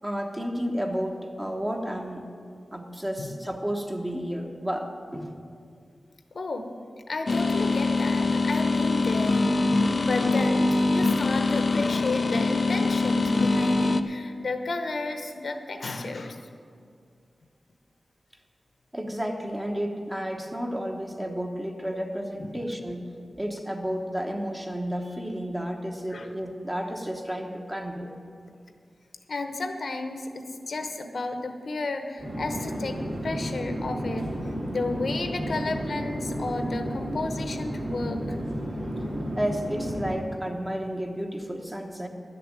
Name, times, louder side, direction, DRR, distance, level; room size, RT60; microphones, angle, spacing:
voice 1, 0.0-2.3 2.7-5.3 18.9-23.1 23.3-28.1 39.4-42.1, equal, 15° right, 2 dB, 1.1 m, -32 dB
voice 2, 6.3-6.7 7.1-9.7 10.0-16.4 22.3-22.6 26.1-26.3 29.3-34.4 34.7-38.4, left 3 dB, 65° left, 6 dB, 0.9 m, -32 dB
sound 1, 7.3-14.0, left 3 dB, 50° left, 0.5 m, -23 dB
Conversation / Chatter / Fixed-wing aircraft airplane, 32.2-40.1, equal, 85° right, 3.8 m, -32 dB
11.5 x 6.8 x 8.9 m, 2.3 s
wide cardioid pair, 120°, 0 cm